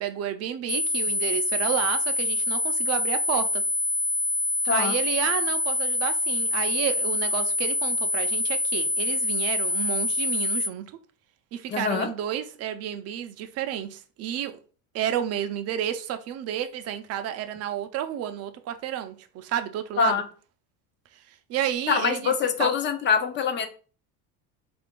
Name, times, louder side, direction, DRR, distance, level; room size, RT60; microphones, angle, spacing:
voice 1, 0.0-3.6 4.7-10.8 11.5-14.6 14.9-20.2 21.5-22.3 22.6-22.7, right 10 dB, 45° right, 0.5 m, -31 dB
sound 1, 0.7-10.7, left 2 dB, 60° left, 0.9 m, -26 dB
voice 2, 4.6-4.9 11.7-12.1 20.0-20.2 21.9-23.7, left 6 dB, 30° left, 0.5 m, -24 dB
3.7 x 2.5 x 3.6 m
cardioid pair, 140°, 37 cm